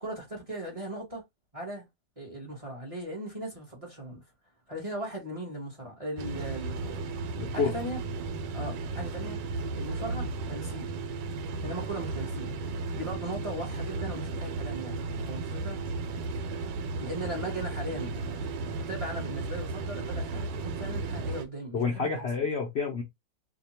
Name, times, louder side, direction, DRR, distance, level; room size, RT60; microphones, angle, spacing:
voice 1, 0.0-1.2 1.5-1.8 2.2-4.2 4.7-7.0 7.3-8.0 8.5-9.4 9.7-10.9 11.6-12.5 12.9-15.8 17.0-18.4 18.9-22.1, right 1 dB, 25° right, 0.9 m, -38 dB
sound 1, 6.2-21.4, right 3 dB, 80° right, 1.2 m, -34 dB
voice 2, 7.4-7.8 21.7-23.0, left 5 dB, 85° left, 0.5 m, -29 dB
2.8 x 2.2 x 4.2 m
omnidirectional pair, 2.0 m